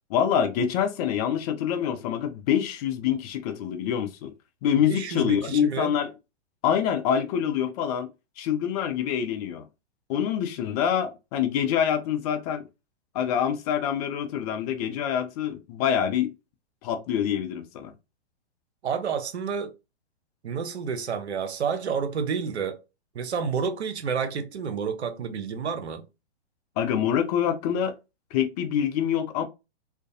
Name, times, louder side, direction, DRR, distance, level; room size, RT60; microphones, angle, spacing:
voice 1, 0.1-4.3 4.6-6.1 6.6-8.1 8.4-9.6 10.1-12.6 13.1-16.3 16.8-17.9 26.8-27.9 28.3-29.4, left 9 dB, 35° left, 0.5 m, -26 dB
voice 2, 4.9-5.9 18.8-19.7 20.4-22.8 23.1-26.0, right 6 dB, 80° right, 0.6 m, -29 dB
2.4 x 2.2 x 2.6 m
hypercardioid pair, 115°, 32 cm